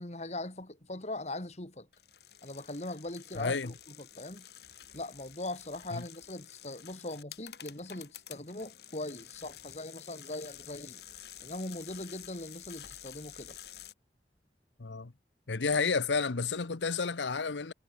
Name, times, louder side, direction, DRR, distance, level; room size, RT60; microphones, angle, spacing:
voice 1, 0.0-1.9 2.4-4.5 4.9-11.0 11.4-13.6, left 2 dB, 40° left, 2.3 m, -40 dB
sound 1, 1.9-13.9, left 10 dB, 65° left, 4.3 m, -50 dB
voice 2, 3.3-3.7 5.9-6.0 14.8-15.1 15.5-17.7, left 4 dB, 85° left, 0.9 m, -31 dB
head